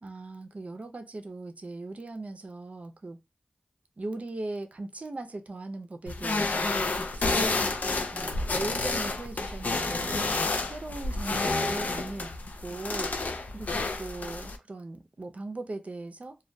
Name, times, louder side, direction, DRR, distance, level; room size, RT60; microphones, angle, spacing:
voice 1, 0.0-3.2 4.0-12.3 12.6-13.1 13.5-13.7 14.0-16.4, right 2 dB, 55° right, 0.5 m, -39 dB
sound 1, 6.1-14.6, left 3 dB, 80° left, 0.3 m, -30 dB
2.2 x 2.2 x 2.5 m
wide cardioid pair, 55°, 3 cm